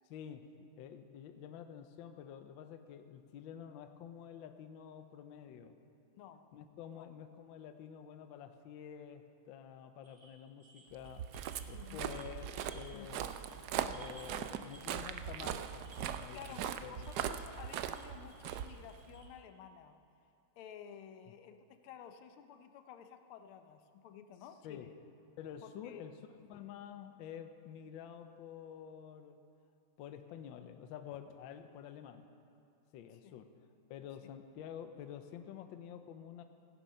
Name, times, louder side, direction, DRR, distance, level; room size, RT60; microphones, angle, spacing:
voice 1, 0.1-5.7 6.5-11.2 11.7-12.5 12.7-13.3 13.9-17.1 24.6-24.9 25.4-26.2 26.5-29.4 30.0-32.3 32.9-33.5 33.9-36.4, left 9 dB, 70° left, 8 dB, 1.4 m, -49 dB
voice 2, 6.1-6.5 6.9-7.1 11.7-12.0 12.9-13.1 13.8-14.1 16.3-20.0 20.6-25.0 25.6-26.1 33.1-33.4, left 8 dB, 90° left, 8 dB, 1.6 m, -53 dB
Suzu - Japanese Bell, 10.0-13.0 13.3-13.6 13.9-19.3, right 1 dB, 20° right, 1.7 m, -61 dB
Walk footsteps, 11.0-19.3, right 9 dB, 80° right, 0.9 m, -40 dB
16.0 x 9.8 x 5.6 m, 2.6 s
omnidirectional pair, 2.3 m